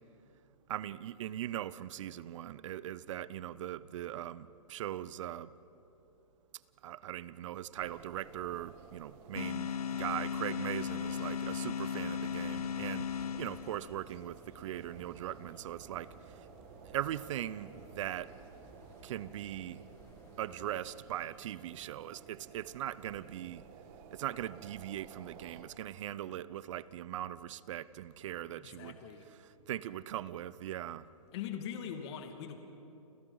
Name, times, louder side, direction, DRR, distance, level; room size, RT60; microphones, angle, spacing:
voice 1, 0.7-5.5 6.8-13.1 13.4-16.1 16.9-18.3 19.0-19.8 20.4-23.6 24.1-29.0 29.7-31.1, right 12 dB, 55° right, 18 dB, 0.8 m, -40 dB
sound 1, 7.8-25.6, right 6 dB, 35° right, 1.8 m, -55 dB
sound 2, 9.3-14.1, left 7 dB, 85° left, 0.6 m, -36 dB
sound 3, 12.0-20.7, left 2 dB, 15° left, 2.6 m, -59 dB
voice 2, 28.6-29.3 31.3-32.6, left 8 dB, 45° left, 5 dB, 2.1 m, -41 dB
30.0 x 27.5 x 4.0 m, 2.9 s
hypercardioid pair, 135°, 19 cm